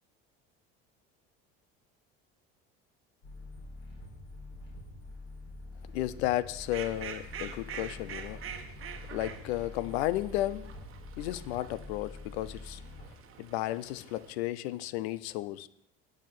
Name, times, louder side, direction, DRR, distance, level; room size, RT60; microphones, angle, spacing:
sound 1, 3.2-13.1, left 2 dB, 60° left, 4.6 m, -46 dB
voice 1, 5.9-8.4 9.1-10.7 11.2-12.8 13.4-15.7, left 15 dB, 85° left, 0.5 m, -33 dB
Fowl, 6.5-14.3, right 8 dB, 45° right, 1.1 m, -46 dB
7.6 x 7.1 x 5.9 m
supercardioid pair, 90°, 31 cm